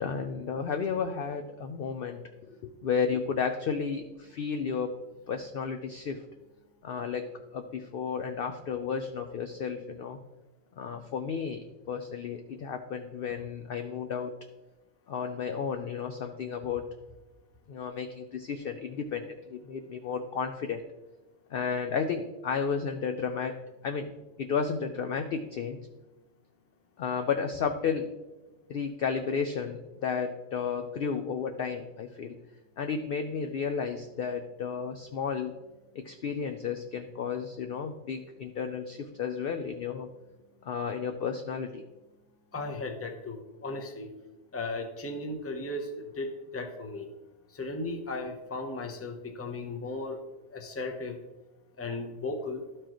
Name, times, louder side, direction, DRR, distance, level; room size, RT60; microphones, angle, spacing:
voice 1, 0.0-4.9 5.3-6.2 6.8-7.3 7.5-10.2 10.8-14.3 15.1-16.9 17.7-20.8 21.5-24.1 24.4-25.8 27.0-28.1 28.7-32.4 32.8-35.5 35.9-40.1 40.6-41.8, left 6 dB, 65° left, 6 dB, 0.5 m, -33 dB
voice 2, 42.5-44.1 44.5-45.9 46.1-47.0 47.5-50.2 50.5-51.2 51.8-52.6, left 2 dB, 15° left, 3 dB, 0.5 m, -36 dB
12.5 x 4.6 x 3.0 m, 1.1 s
omnidirectional pair, 1.4 m